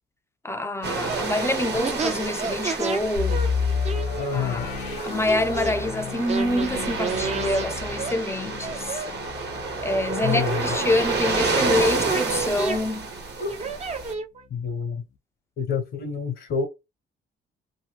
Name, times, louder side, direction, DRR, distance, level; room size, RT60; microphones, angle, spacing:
voice 1, 0.4-3.5 4.3-4.7 5.0-9.0 9.8-13.1, left 1 dB, 15° left, 0.5 m, -26 dB
sound 1, 0.8-14.1, right 4 dB, 55° right, 1.3 m, -30 dB
sound 2, 1.1-1.2 1.8-3.0 3.3-5.7 6.3-7.7 8.0-8.1 8.6-9.4 9.8-10.7 11.0-12.8 13.4-14.4, right 4 dB, 35° right, 0.7 m, -31 dB
sound 3, 3.2-12.9 13.2-13.3 13.8-14.1, left 6 dB, 85° left, 0.7 m, -32 dB
voice 2, 4.2-4.7 10.2-10.7 13.4-13.7 14.5-15.0 15.6-16.7, left 6 dB, 65° left, 1.1 m, -28 dB
2.8 x 2.7 x 2.9 m
cardioid pair, 90°, 20 cm